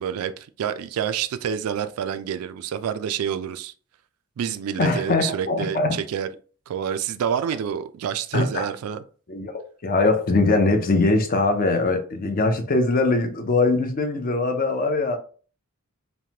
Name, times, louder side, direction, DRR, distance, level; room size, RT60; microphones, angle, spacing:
voice 1, 0.0-3.7 4.4-6.3 6.7-9.0, right 8 dB, 80° right, 0.3 m, -28 dB
voice 2, 4.8-6.0 8.3-8.7 9.3-15.2, left 3 dB, 40° left, 0.4 m, -22 dB
3.1 x 2.1 x 2.7 m
head